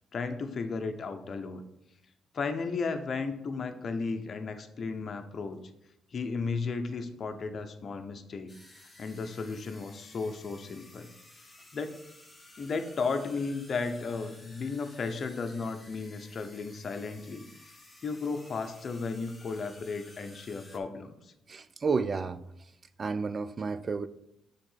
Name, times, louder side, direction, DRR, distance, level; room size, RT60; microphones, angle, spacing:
voice 1, 0.1-1.6 2.3-5.6 6.1-8.5 9.0-11.1 11.7-11.9 12.6-17.5 18.0-21.3, left 4 dB, 45° left, 0.8 m, -34 dB
sound 1, 8.5-20.8, left 2 dB, 10° left, 1.4 m, -54 dB
voice 2, 21.5-22.4 23.0-24.1, right 4 dB, 35° right, 0.4 m, -31 dB
6.7 x 3.7 x 5.6 m
cardioid pair, 90°, 0 cm